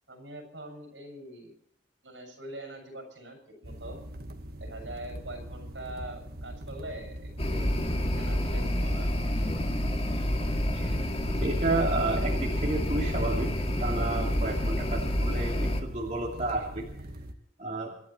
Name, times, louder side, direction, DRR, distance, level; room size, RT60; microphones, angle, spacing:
voice 1, 0.1-1.5 2.0-4.0 4.6-7.8 8.2-9.3, right 1 dB, 70° right, 4 dB, 6.6 m, -43 dB
sound 1, 3.6-17.3, right 1 dB, 55° right, 1.6 m, -42 dB
sound 2, 7.4-15.8, equal, 35° left, 2.3 m, -28 dB
voice 2, 11.3-17.1 17.6-17.9, right 2 dB, 40° right, -2 dB, 2.8 m, -31 dB
27.0 x 11.5 x 4.3 m, 0.73 s
head